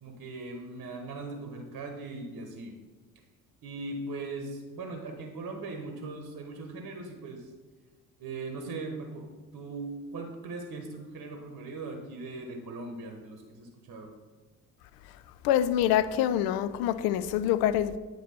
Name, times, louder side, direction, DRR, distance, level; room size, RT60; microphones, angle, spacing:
voice 1, 0.0-2.8 3.6-7.5 8.2-14.1, right 3 dB, 45° right, 1.0 m, -39 dB
voice 2, 15.4-18.0, left 11 dB, 55° left, 0.5 m, -25 dB
9.0 x 3.0 x 4.3 m
figure-of-eight pair, 45°, 44 cm